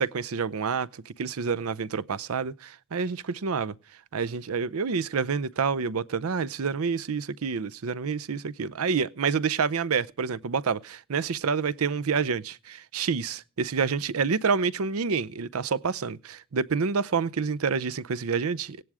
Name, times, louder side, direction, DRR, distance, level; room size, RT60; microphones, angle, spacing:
voice 1, 0.0-3.7 4.1-18.8, right 5 dB, 90° right, 0.6 m, -28 dB
16.5 x 11.0 x 4.8 m
head